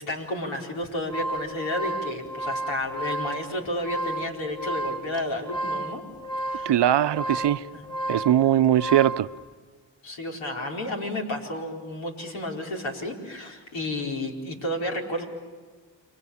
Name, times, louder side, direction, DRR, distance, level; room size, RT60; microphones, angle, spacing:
voice 1, 0.0-6.0 6.4-6.7 7.7-7.9 10.0-15.2, left 1 dB, 80° left, 5.0 m, -31 dB
sound 1, 0.8-9.3, right 1 dB, 10° left, 1.5 m, -32 dB
voice 2, 6.7-7.6 8.1-9.3, right 11 dB, 60° right, 0.8 m, -20 dB
30.0 x 24.5 x 7.2 m
cardioid pair, 60°, 46 cm